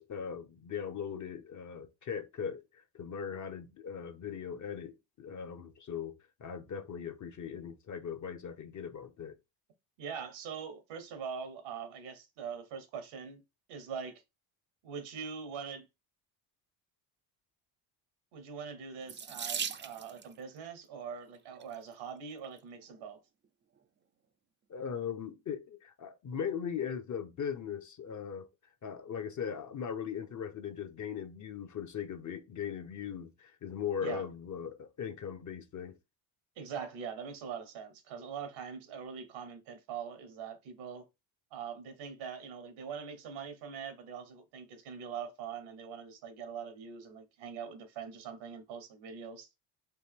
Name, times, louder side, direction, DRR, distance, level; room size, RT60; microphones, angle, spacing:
voice 1, 0.0-2.6 2.9-6.1 6.4-9.3 24.7-28.5 28.8-36.0, left 7 dB, 40° left, 0.7 m, -39 dB
voice 2, 10.0-13.4 13.7-14.2 14.8-15.8 18.3-23.2 34.0-34.3 36.6-41.1 41.5-49.5, right 6 dB, 90° right, 1.2 m, -43 dB
Water tap faucet / Sink (filling or washing), 19.1-20.3 21.3-21.7 22.4-22.5 22.9-23.0, right 7 dB, 25° right, 0.4 m, -38 dB
4.4 x 2.5 x 3.5 m
cardioid pair, 80°, 46 cm